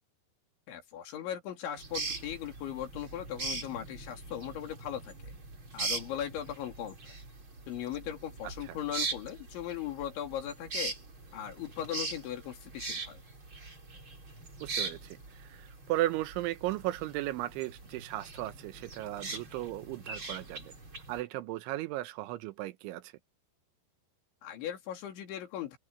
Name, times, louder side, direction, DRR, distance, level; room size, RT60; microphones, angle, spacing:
voice 1, 0.7-5.3 5.7-7.2 7.7-10.9 11.3-13.2 24.4-25.8, left 10 dB, 80° left, 5.2 m, -38 dB
sound 1, 1.8-21.2, right 3 dB, 25° right, 5.2 m, -41 dB
voice 2, 14.6-20.7 21.1-23.0, right 16 dB, 90° right, 3.4 m, -36 dB
omnidirectional pair, 5.3 m